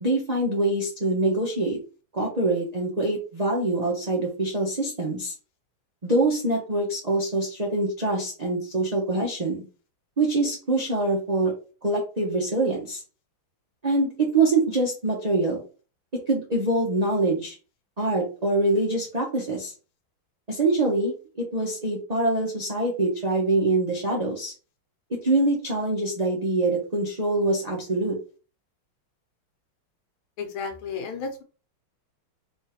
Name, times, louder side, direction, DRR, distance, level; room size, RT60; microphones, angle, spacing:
voice 1, 0.0-1.8 2.1-5.3 6.0-9.6 10.2-11.5 11.8-13.0 13.8-15.6 16.3-17.6 18.0-19.7 20.5-24.5 25.2-28.2, right 2 dB, 55° right, -2 dB, 0.4 m, -24 dB
voice 2, 30.4-31.4, left 5 dB, 80° left, 5 dB, 1.7 m, -33 dB
3.6 x 3.2 x 2.9 m, 0.34 s
omnidirectional pair, 2.3 m